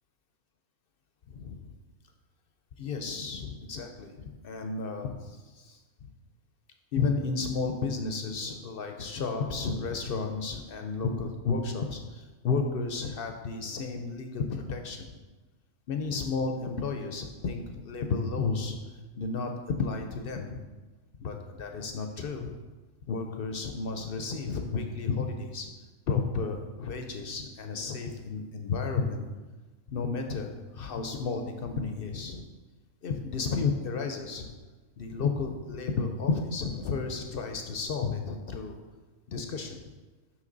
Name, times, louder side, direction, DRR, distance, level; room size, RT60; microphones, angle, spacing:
voice 1, 1.3-1.6 2.8-5.8 6.9-15.0 15.9-18.8 19.1-19.5 19.8-20.6 21.2-22.5 23.1-25.7 26.1-29.2 29.9-32.5 33.0-34.5 35.0-38.8 39.3-39.8, left 4 dB, 60° left, 4 dB, 0.6 m, -32 dB
6.1 x 5.7 x 3.9 m, 1.3 s
omnidirectional pair, 1.5 m